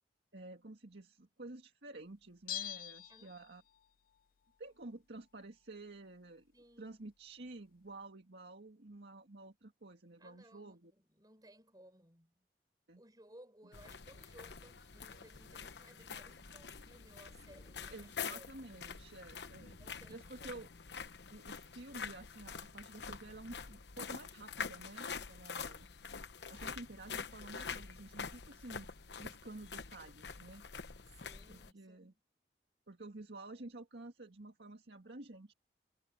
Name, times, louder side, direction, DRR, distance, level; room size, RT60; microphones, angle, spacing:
voice 1, 0.3-3.6 4.6-6.5 6.8-10.9 12.9-13.0 17.9-19.8 20.1-20.7 21.3-25.9 26.4-30.7 31.5-32.1 32.9-35.5, right 2 dB, 75° right, 1.9 m, -51 dB
Bell, 2.5-3.9 4.2-4.3, left 11 dB, 50° left, 0.4 m, -44 dB
voice 2, 6.5-7.0 10.2-12.5 13.0-18.7 19.8-20.7 25.5-25.7 31.1-32.2, right 1 dB, 20° right, 6.8 m, -61 dB
sound 1, 13.7-31.7, left 6 dB, 75° left, 1.0 m, -46 dB
head